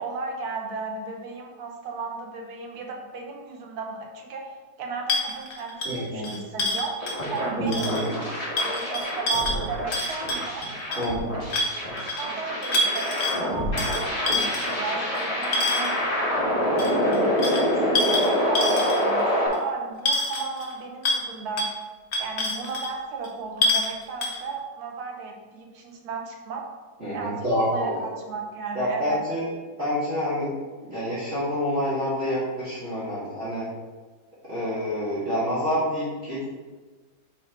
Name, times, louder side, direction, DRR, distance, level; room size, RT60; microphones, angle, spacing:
voice 1, 0.0-4.5 4.8-5.8 6.1-7.0 7.3-8.2 8.6-10.7 11.3-11.8 12.2-16.0 16.7-21.7 22.2-26.7 27.1-29.2, right 4 dB, 60° right, 1 dB, 1.4 m, -35 dB
sound 1, 5.1-7.4 7.7-8.1 8.6-11.1 11.5-12.3 12.6-13.4 13.8-16.0 16.8-19.2 19.5-19.6 20.1-20.7 21.0-21.3 21.6-21.7 22.1-22.9 23.2-23.3 23.6-23.9 24.2-24.4, left 2 dB, 60° left, 1.3 m, -27 dB
voice 2, 5.8-6.3 7.6-8.1 11.0-11.4 27.0-28.1 28.7-29.5 29.8-30.5 30.8-33.7 34.5-36.4, equal, 40° right, -11 dB, 2.1 m, -27 dB
sound 2, 7.0-19.5, equal, 20° left, 2.1 m, -26 dB
6.0 x 4.4 x 4.3 m, 1.3 s
omnidirectional pair, 2.0 m